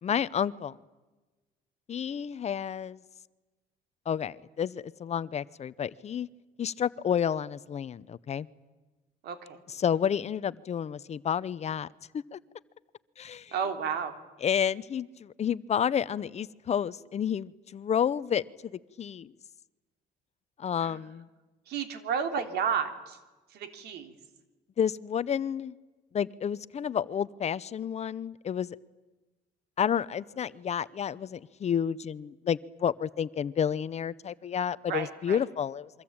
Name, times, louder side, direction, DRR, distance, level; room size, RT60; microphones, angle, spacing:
voice 1, 0.0-0.8 1.9-3.0 4.1-6.3 6.6-8.5 9.7-11.9 12.1-12.4 13.2-13.5 14.4-18.7 19.0-19.3 20.6-21.3 24.8-25.7 26.1-28.8 29.8-35.9, left 8 dB, 40° left, 17 dB, 0.8 m, -30 dB
voice 2, 9.2-9.6 13.5-14.1 20.8-21.0 21.7-23.2 23.5-24.1 34.9-35.4, right 7 dB, 75° right, 8 dB, 3.3 m, -32 dB
28.0 x 24.5 x 8.8 m, 1.2 s
cardioid pair, 110°, 17 cm